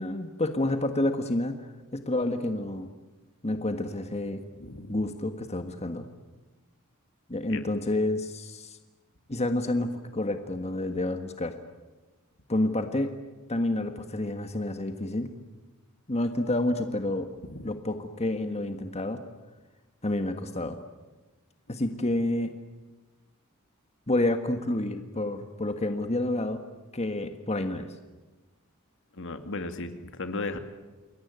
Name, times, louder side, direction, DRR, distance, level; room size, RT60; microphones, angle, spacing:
voice 1, 0.0-1.6 1.9-2.9 3.4-4.4 4.9-6.1 7.3-8.8 9.3-11.5 12.5-13.1 13.5-15.3 16.1-17.3 17.6-19.2 20.0-20.8 21.7-22.5 24.1-26.6 26.9-27.9, left 1 dB, 30° left, 7 dB, 1.6 m, -29 dB
voice 2, 4.6-5.0 7.5-7.6 17.5-17.7 29.1-30.6, left 2 dB, 65° left, 8 dB, 2.3 m, -35 dB
28.5 x 22.0 x 9.5 m, 1.2 s
head